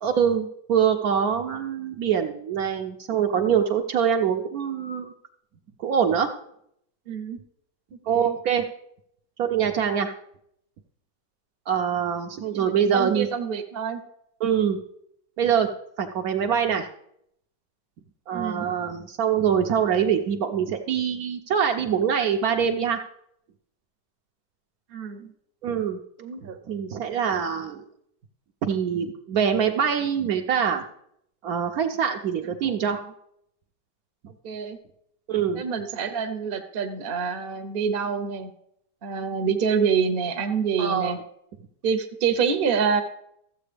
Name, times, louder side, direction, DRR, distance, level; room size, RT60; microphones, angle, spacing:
voice 1, 0.0-5.1 5.8-6.3 8.0-8.7 9.4-10.1 11.7-13.3 14.4-14.8 15.4-15.7 16.0-16.9 18.3-23.0 25.6-26.0 26.4-27.8 28.6-30.8 31.4-33.0 35.3-35.6 40.8-41.1, right 8 dB, 70° right, 4 dB, 1.0 m, -24 dB
voice 2, 7.1-7.4 7.9-8.3 12.5-14.0 18.3-18.6 24.9-25.3 26.2-26.6 34.4-34.8 35.5-38.5 39.0-41.2 41.8-43.0, right 6 dB, 45° right, 6 dB, 0.8 m, -27 dB
14.0 x 7.6 x 3.3 m, 0.74 s
omnidirectional pair, 1.8 m